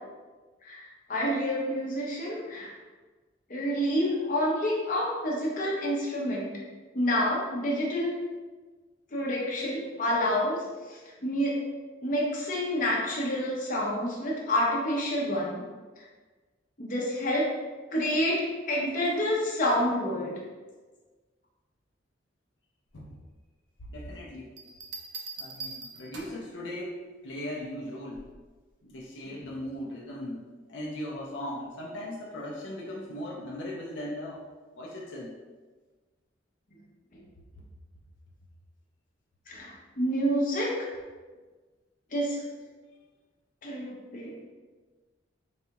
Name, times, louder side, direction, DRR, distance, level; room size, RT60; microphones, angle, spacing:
voice 1, 0.6-2.7 3.5-6.5 6.9-8.1 9.1-10.6 11.2-11.6 12.0-15.6 16.8-17.5 17.9-20.3 39.5-40.9 42.1-42.4 43.6-44.3, equal, 45° left, -4 dB, 0.8 m, -28 dB
voice 2, 23.9-24.5 25.4-28.3 28.8-30.4 30.7-34.4 34.7-35.3, left 1 dB, 75° left, -4 dB, 0.6 m, -38 dB
sound 1, 24.6-26.5 28.1-28.5, right 4 dB, 65° right, 0.4 m, -41 dB
4.0 x 2.3 x 2.9 m, 1.3 s
head